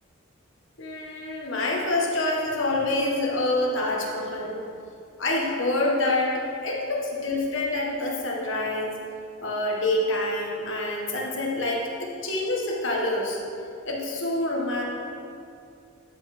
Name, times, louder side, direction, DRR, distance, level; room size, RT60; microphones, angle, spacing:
voice 1, 0.8-4.6 5.2-9.0 9.4-13.4 13.8-14.8, left 2 dB, 60° left, -2 dB, 1.6 m, -26 dB
13.0 x 6.3 x 4.5 m, 2.5 s
head